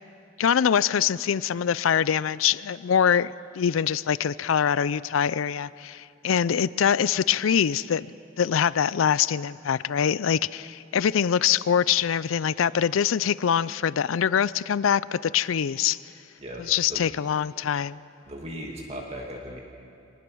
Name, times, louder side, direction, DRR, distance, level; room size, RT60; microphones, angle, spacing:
voice 1, 0.4-16.0 16.6-18.0, left 8 dB, 90° left, 18 dB, 0.4 m, -24 dB
voice 2, 16.4-17.1 18.3-19.6, equal, 30° right, 0 dB, 1.9 m, -37 dB
24.0 x 20.0 x 6.3 m, 2.5 s
head